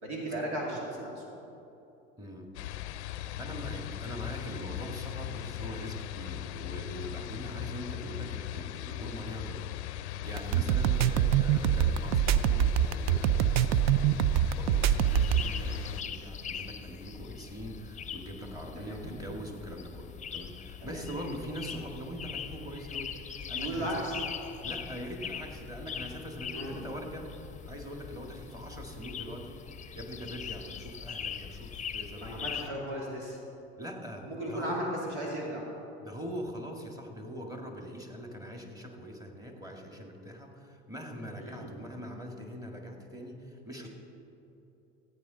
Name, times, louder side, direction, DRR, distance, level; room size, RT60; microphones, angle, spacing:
voice 1, 0.0-1.2 18.8-19.0 20.8-21.1 23.5-24.2 26.5-26.8 32.1-33.4 34.2-35.7 41.4-41.6 43.7-43.9, right 1 dB, 90° right, -3 dB, 2.5 m, -36 dB
voice 2, 2.2-2.5 3.1-24.0 24.6-32.4 33.8-34.8 36.0-43.9, equal, 10° right, 2 dB, 1.8 m, -42 dB
sound 1, 2.5-16.0, left 13 dB, 85° left, 0.5 m, -39 dB
sound 2, 10.4-15.5, right 10 dB, 55° right, 0.5 m, -24 dB
sound 3, 15.1-32.7, left 7 dB, 25° left, 0.6 m, -41 dB
14.5 x 8.6 x 3.9 m, 2.9 s
hypercardioid pair, 75°, 33 cm